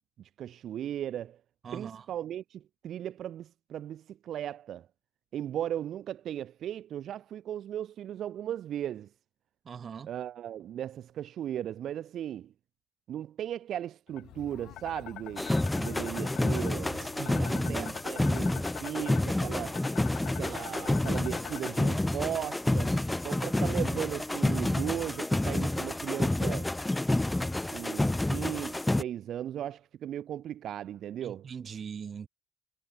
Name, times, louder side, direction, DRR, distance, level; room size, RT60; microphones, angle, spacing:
voice 1, 0.2-1.4 1.7-4.9 5.3-9.1 10.0-12.5 13.1-19.8 20.4-23.0 23.2-26.7 27.7-31.5, right 11 dB, 55° right, 1.2 m, -37 dB
voice 2, 1.6-2.1 9.6-10.1 17.2-18.0 31.2-32.3, right 7 dB, 35° right, 0.6 m, -40 dB
sound 1, 14.1-21.9, left 14 dB, 80° left, 1.7 m, -45 dB
sound 2, 15.4-29.0, left 1 dB, 10° left, 0.3 m, -29 dB
cardioid pair, 160°, 0 cm